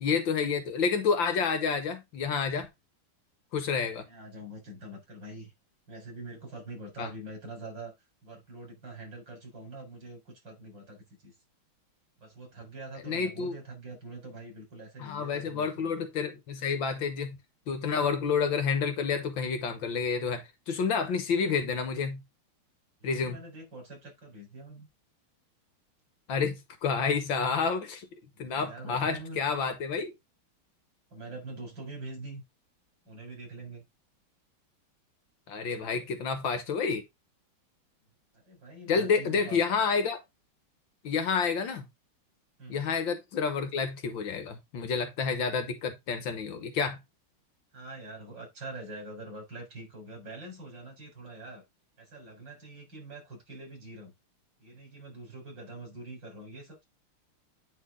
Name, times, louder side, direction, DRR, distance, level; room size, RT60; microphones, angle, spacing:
voice 1, 0.0-2.7 3.5-4.0 7.0-7.1 13.1-13.6 15.0-17.4 17.7-22.2 23.0-23.4 26.3-28.1 28.4-30.1 35.5-37.0 38.9-40.2 41.0-41.9 42.7-47.0, left 5 dB, 65° left, 1.8 m, -29 dB
voice 2, 4.0-5.5 5.9-7.9 8.2-11.3 12.2-16.1 16.7-17.0 23.0-24.9 28.3-29.6 31.1-32.4 33.1-33.8 38.5-39.8 42.6-42.8 47.7-51.6 52.0-54.1 54.6-56.9, right 2 dB, 55° right, 4.9 m, -44 dB
9.2 x 4.5 x 3.7 m
omnidirectional pair, 2.4 m